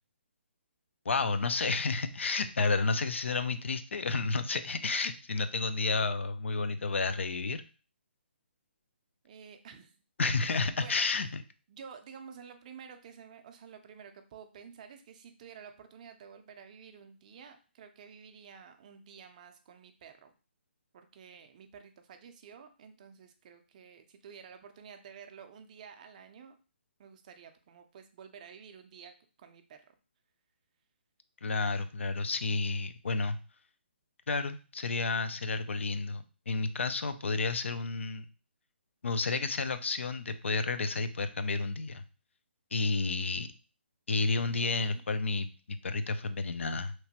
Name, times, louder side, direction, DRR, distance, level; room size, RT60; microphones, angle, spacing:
voice 1, 1.1-7.6 10.2-11.4 31.4-33.4 34.3-38.3 39.0-42.0 42.7-43.5 44.1-46.9, left 3 dB, 90° left, 11 dB, 0.3 m, -31 dB
voice 2, 9.2-11.1 11.7-20.3 20.9-26.6 27.0-29.9 44.6-45.0, right 7 dB, 40° right, 7 dB, 0.4 m, -51 dB
2.9 x 2.1 x 2.8 m, 0.35 s
hypercardioid pair, 150°, 6 cm